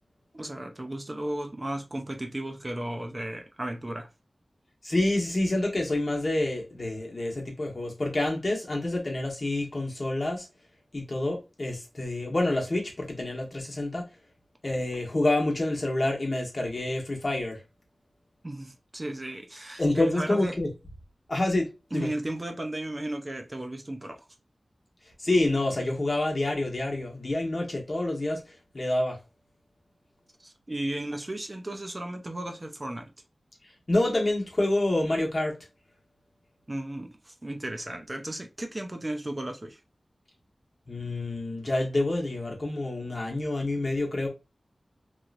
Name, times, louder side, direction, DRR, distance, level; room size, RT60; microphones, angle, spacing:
voice 1, 0.3-4.1 18.4-20.6 21.9-24.2 30.4-33.1 36.7-39.8, right 1 dB, 30° right, 0.5 m, -35 dB
voice 2, 4.8-10.4 10.9-14.0 14.6-17.6 19.8-20.7 21.3-22.1 25.2-28.4 28.7-29.2 33.9-35.5 40.9-44.3, left 2 dB, 45° left, 1.1 m, -27 dB
3.0 x 2.8 x 2.5 m
wide cardioid pair, 90°, 0 cm